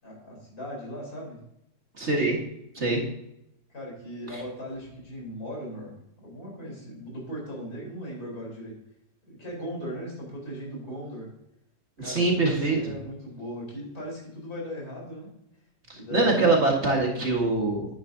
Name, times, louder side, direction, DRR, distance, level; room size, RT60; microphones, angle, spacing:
voice 1, 0.0-1.4 3.7-6.0 6.2-8.8 9.3-11.3 12.0-15.3 15.9-16.5 16.9-17.3, equal, 60° left, -3 dB, 4.9 m, -38 dB
voice 2, 2.0-2.4 2.7-3.1 4.3-4.4 12.0-12.9 15.9-17.9, right 3 dB, 40° right, 0 dB, 2.0 m, -24 dB
10.5 x 9.4 x 2.8 m, 0.80 s
omnidirectional pair, 1.8 m